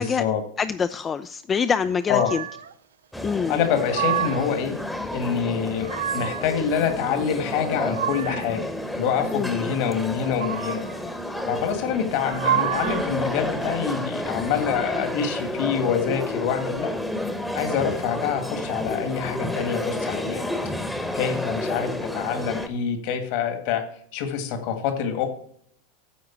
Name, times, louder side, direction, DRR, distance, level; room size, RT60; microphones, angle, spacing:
voice 1, 0.0-0.4 2.1-2.3 3.5-4.7 5.1-10.8 11.5-16.9 17.5-20.4 21.1-23.8 24.1-25.3, left 7 dB, 60° left, 6 dB, 1.7 m, -26 dB
voice 2, 0.6-2.4 3.2-3.6 9.3-9.7, left 6 dB, 25° left, 10 dB, 0.3 m, -25 dB
sound 1, 2.1-2.7 3.6-4.6 5.5-6.5 7.5-8.6 10.1-11.0 12.1-13.1, right 10 dB, 90° right, 0.5 m, -29 dB
sound 2, 3.1-22.7, left 1 dB, 5° left, 1.0 m, -31 dB
9.4 x 3.9 x 7.3 m, 0.67 s
hypercardioid pair, 105°, 0 cm